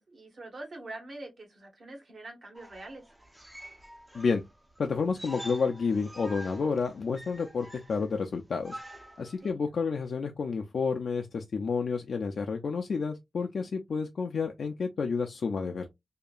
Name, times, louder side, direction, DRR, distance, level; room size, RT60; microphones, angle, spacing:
voice 1, 0.0-3.0 3.4-3.5 9.2-9.6, right 2 dB, 45° right, 0.9 m, -45 dB
sound 1, 2.5-9.5, equal, 5° right, 0.4 m, -47 dB
voice 2, 4.8-8.8 9.2-15.9, left 5 dB, 60° left, 0.3 m, -30 dB
2.8 x 2.5 x 2.3 m
wide cardioid pair, 160°, 0 cm